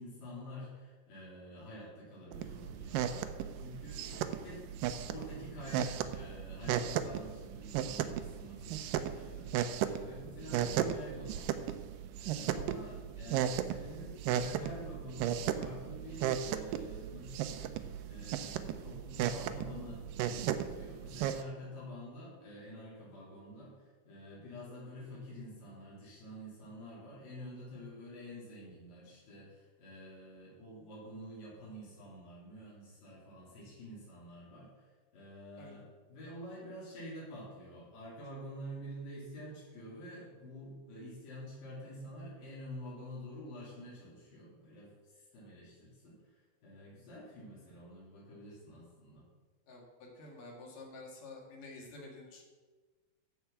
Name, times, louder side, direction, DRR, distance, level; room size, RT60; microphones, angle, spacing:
voice 1, 0.0-4.6 5.0-11.8 12.2-17.7 18.1-46.2 46.6-49.2, equal, 75° left, -8 dB, 5.0 m, -48 dB
sound 1, 2.3-21.4, right 10 dB, 80° right, 2.2 m, -36 dB
voice 2, 49.7-52.5, left 2 dB, 55° left, -1 dB, 3.2 m, -50 dB
13.5 x 4.6 x 7.1 m, 1.3 s
omnidirectional pair, 4.1 m